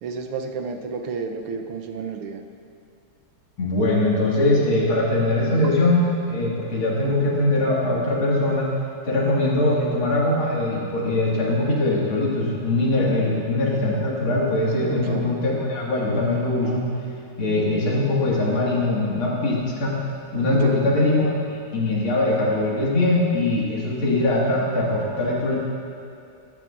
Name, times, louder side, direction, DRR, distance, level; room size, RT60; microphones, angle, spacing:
voice 1, 0.0-2.4 14.9-15.2 20.5-20.8, right 5 dB, 85° right, 4 dB, 1.7 m, -30 dB
voice 2, 3.6-8.7 9.0-16.8 17.4-20.0 20.3-25.6, left 2 dB, 65° left, -5 dB, 2.7 m, -22 dB
14.0 x 12.5 x 2.5 m, 2.6 s
omnidirectional pair, 2.4 m